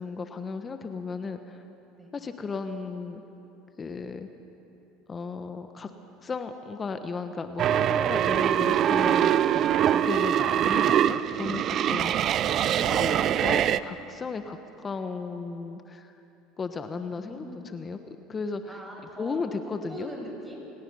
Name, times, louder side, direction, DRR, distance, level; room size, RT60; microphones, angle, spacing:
voice 1, 0.0-1.6 2.1-3.2 3.8-4.3 5.1-5.9 6.2-12.4 12.8-16.1 16.6-18.0 18.3-18.8 19.2-20.1, left 4 dB, 30° left, 8 dB, 1.2 m, -35 dB
sound 1, 7.6-13.8, right 10 dB, 50° right, 0.5 m, -23 dB
voice 2, 17.0-17.8 18.7-20.7, equal, 15° right, 0 dB, 6.7 m, -42 dB
30.0 x 18.5 x 5.5 m, 2.9 s
hypercardioid pair, 85°, 0 cm